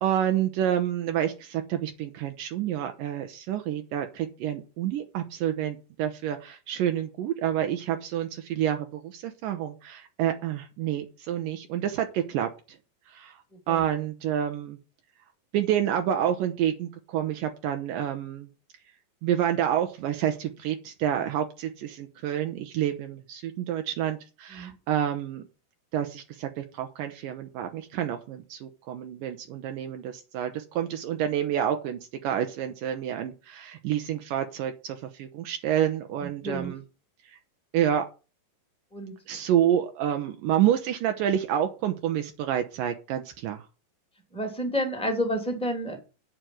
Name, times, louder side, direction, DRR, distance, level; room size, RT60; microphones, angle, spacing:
voice 1, 0.0-12.5 13.1-13.3 13.7-14.8 15.5-18.5 19.2-25.4 25.9-36.8 37.7-38.0 39.3-43.6, right 10 dB, 75° right, 6 dB, 2.4 m, -28 dB
voice 2, 13.5-13.8 24.5-24.7 36.2-36.7 38.9-39.1 44.3-46.0, equal, ahead, 3 dB, 2.1 m, -30 dB
9.3 x 5.2 x 7.6 m, 0.32 s
omnidirectional pair, 4.0 m